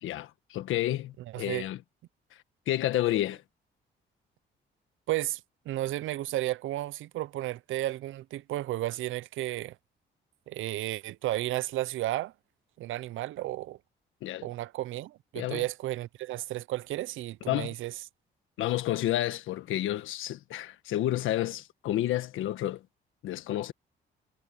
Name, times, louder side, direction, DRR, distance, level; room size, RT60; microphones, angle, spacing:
voice 1, 0.0-1.8 2.7-3.4 14.2-14.5 15.3-15.6 17.5-17.7 18.6-22.8 23.2-23.7, left 14 dB, 85° left, 1.5 m, -30 dB
voice 2, 1.3-1.7 5.1-5.4 5.7-9.7 10.5-12.3 12.8-13.8 14.4-17.9, right 15 dB, 80° right, 0.6 m, -33 dB
cardioid pair, 90°, 20 cm